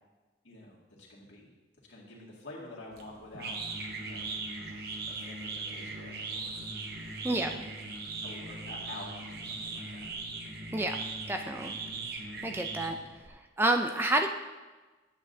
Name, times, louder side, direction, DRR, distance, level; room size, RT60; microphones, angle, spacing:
voice 1, 0.4-0.8 1.1-1.5 1.9-3.6 3.9-4.3 5.1-6.6 7.2-7.3 8.2-10.1, left 2 dB, 80° left, -4 dB, 2.1 m, -48 dB
sound 1, 2.9-13.3, right 3 dB, 55° right, 0.9 m, -39 dB
voice 2, 7.2-7.6 10.7-11.0 11.3-11.7 12.4-13.0 13.6-14.3, right 2 dB, 10° right, 5 dB, 0.4 m, -28 dB
10.5 x 8.4 x 2.7 m, 1.2 s
head